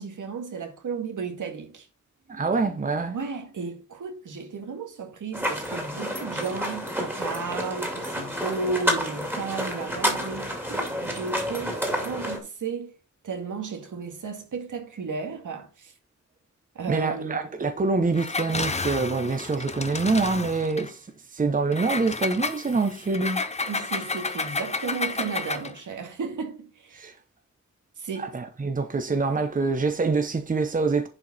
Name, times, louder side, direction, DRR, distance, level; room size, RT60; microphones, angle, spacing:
voice 1, 0.0-1.9 3.1-13.0 13.2-15.9 16.8-17.5 23.7-27.1 28.0-28.3, right 5 dB, 80° right, 2.0 m, -34 dB
voice 2, 2.3-3.2 16.9-21.1 21.3-23.4 26.9-27.1 28.2-31.1, right 3 dB, 25° right, 1.0 m, -25 dB
sound 1, 5.3-12.4, equal, 5° right, 2.3 m, -29 dB
Engine, 18.1-20.9 21.7-25.8, left 3 dB, 20° left, 0.7 m, -31 dB
11.0 x 4.9 x 4.3 m
wide cardioid pair, 180°, 31 cm